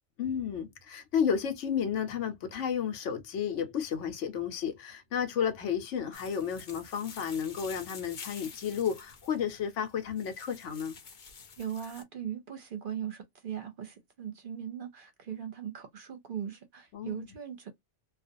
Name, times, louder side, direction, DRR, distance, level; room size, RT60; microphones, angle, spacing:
voice 1, 0.2-11.0 16.9-17.3, left 7 dB, 80° left, 1.0 m, -32 dB
sound 1, 6.1-12.0, left 5 dB, 50° left, 0.7 m, -49 dB
voice 2, 11.6-17.7, right 9 dB, 55° right, 0.7 m, -39 dB
2.4 x 2.3 x 2.5 m
omnidirectional pair, 1.2 m